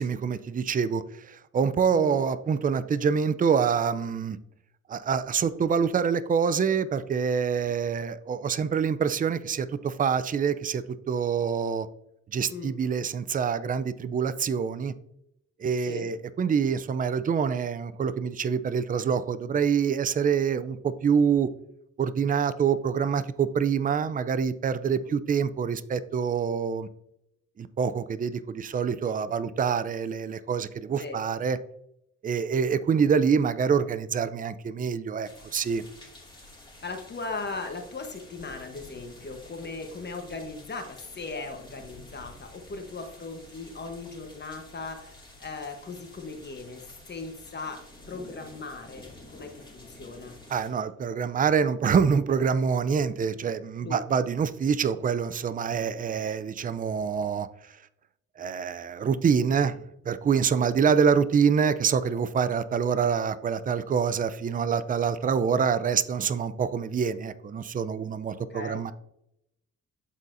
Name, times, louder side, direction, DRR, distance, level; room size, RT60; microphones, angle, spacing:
voice 1, 0.0-4.4 4.9-11.9 12.3-14.9 15.6-21.5 22.0-26.9 27.6-31.6 32.2-35.8 50.5-57.5 58.4-59.8 60.1-68.9, right 6 dB, 30° right, 14 dB, 0.5 m, -26 dB
sound 1, 35.2-50.7, left 1 dB, 15° left, 2.3 m, -50 dB
voice 2, 36.8-50.4 53.8-54.0 60.6-60.7 65.2-65.4 68.4-68.8, left 3 dB, 35° left, 5 dB, 1.1 m, -38 dB
12.0 x 4.1 x 2.6 m, 0.79 s
cardioid pair, 90°, 30 cm